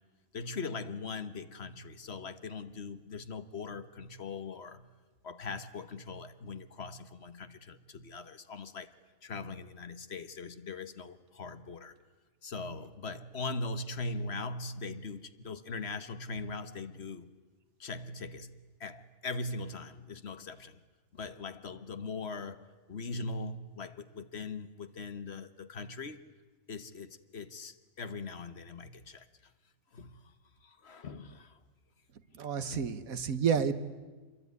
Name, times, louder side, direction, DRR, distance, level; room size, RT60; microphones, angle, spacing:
voice 1, 0.3-4.9 5.2-8.9 9.2-11.9 12.4-17.3 17.8-18.5 18.8-20.8 21.1-26.2 26.7-29.3 29.9-30.2 30.6-31.6 32.6-32.9 33.5-33.7, left 3 dB, 50° left, 1.4 m, -41 dB
voice 2, 32.3-33.7, right 7 dB, 90° right, 1.7 m, -30 dB
27.5 x 22.5 x 9.5 m
omnidirectional pair, 1.4 m